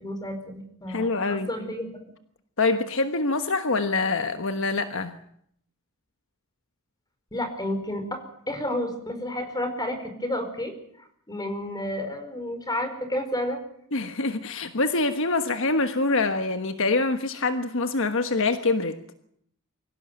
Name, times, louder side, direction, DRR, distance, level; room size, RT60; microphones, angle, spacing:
voice 1, 0.0-1.9 7.3-8.2 8.5-10.7 11.3-13.6, left 1 dB, 20° left, 8 dB, 4.8 m, -31 dB
voice 2, 0.9-1.5 2.6-5.2 13.9-19.0, left 3 dB, 60° left, 8 dB, 1.3 m, -25 dB
24.5 x 16.5 x 9.4 m, 0.69 s
head